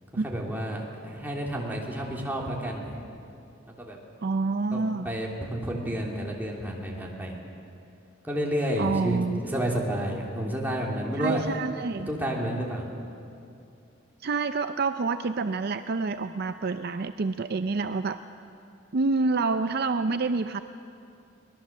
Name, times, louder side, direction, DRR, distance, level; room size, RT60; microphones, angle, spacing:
voice 1, 0.2-2.9 3.8-4.0 4.7-7.4 8.2-9.2 9.4-11.5 12.1-12.9, right 1 dB, 10° right, -2 dB, 3.0 m, -30 dB
voice 2, 4.2-5.1 8.8-9.4 11.2-12.1 14.2-18.2 18.9-20.6, right 3 dB, 50° right, 10 dB, 0.5 m, -27 dB
23.5 x 19.0 x 7.3 m, 2.6 s
head